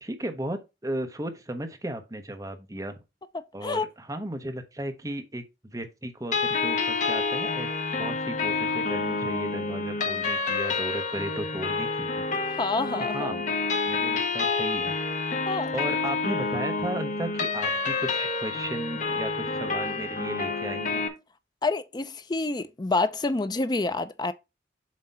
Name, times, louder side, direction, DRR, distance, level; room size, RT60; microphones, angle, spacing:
voice 1, 0.0-3.0 3.5-12.2 13.1-13.5 13.8-14.9 15.7-21.0, right 1 dB, 20° right, 0.9 m, -35 dB
sound 1, 6.3-21.1, left 4 dB, 45° left, 1.0 m, -28 dB
voice 2, 12.6-13.3 15.5-15.7 21.6-24.3, left 3 dB, 25° left, 0.5 m, -27 dB
7.4 x 2.9 x 5.5 m
head